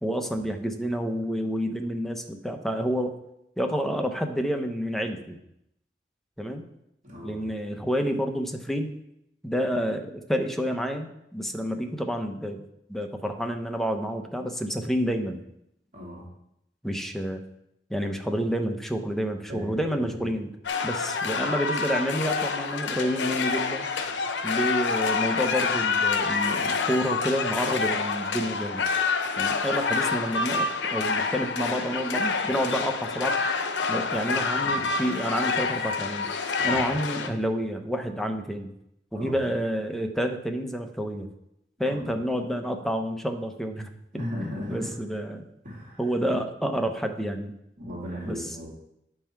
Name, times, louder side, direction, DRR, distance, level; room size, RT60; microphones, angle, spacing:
voice 1, 0.0-3.1 3.6-5.4 6.4-6.7 7.2-8.9 9.4-12.6 12.9-15.4 16.8-17.4 17.9-20.5 20.8-23.9 24.4-28.8 29.4-33.4 33.9-36.3 36.6-38.7 39.1-41.3 41.8-45.4 46.0-47.5 48.2-48.5, equal, ahead, 4 dB, 0.8 m, -29 dB
voice 2, 7.0-7.4 15.9-16.3 19.5-20.4 24.1-24.2 34.7-34.8 36.6-36.8 39.1-39.4 41.8-42.0 44.1-44.9 45.6-46.0 47.8-48.7, equal, 45° right, -4 dB, 2.7 m, -37 dB
sound 1, 20.6-37.3, left 4 dB, 80° left, 0.8 m, -27 dB
9.9 x 5.5 x 4.6 m, 0.80 s
head